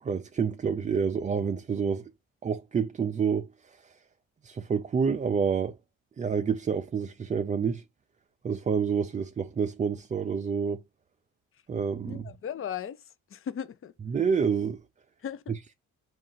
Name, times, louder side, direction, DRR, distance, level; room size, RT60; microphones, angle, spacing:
voice 1, 0.0-2.1 2.4-4.0 4.4-5.7 6.2-7.8 8.4-10.8 11.7-12.3 14.1-14.8, right 6 dB, 25° right, 0.4 m, -28 dB
voice 2, 12.0-13.9 15.2-15.5, left 8 dB, 45° left, 0.6 m, -37 dB
4.3 x 2.4 x 3.8 m
cardioid pair, 90°, 30 cm